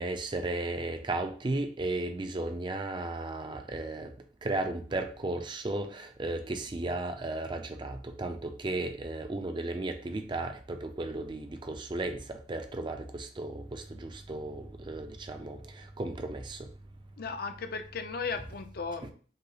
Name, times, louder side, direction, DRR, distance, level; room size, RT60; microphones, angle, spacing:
voice 1, 0.0-4.1 4.4-16.7 19.0-19.1, right 2 dB, 25° right, 6 dB, 0.4 m, -35 dB
voice 2, 17.2-19.1, left 4 dB, 55° left, 8 dB, 0.5 m, -36 dB
5.5 x 2.0 x 3.9 m, 0.42 s
head